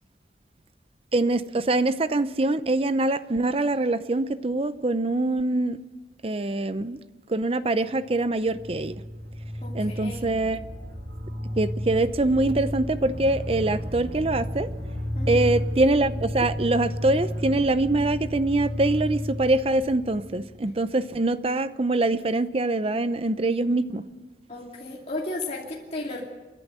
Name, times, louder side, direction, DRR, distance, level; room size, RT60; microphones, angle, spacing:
voice 1, 1.1-5.8 6.2-7.0 7.3-9.0 9.7-10.6 11.6-14.7 15.3-24.0, right 2 dB, 35° right, 14 dB, 0.6 m, -24 dB
sound 1, 8.1-20.9, equal, 75° right, 2.9 m, -32 dB
voice 2, 9.6-10.3 15.1-15.5 24.5-26.3, left 2 dB, 35° left, -3 dB, 2.6 m, -34 dB
29.5 x 11.0 x 8.1 m, 1.3 s
head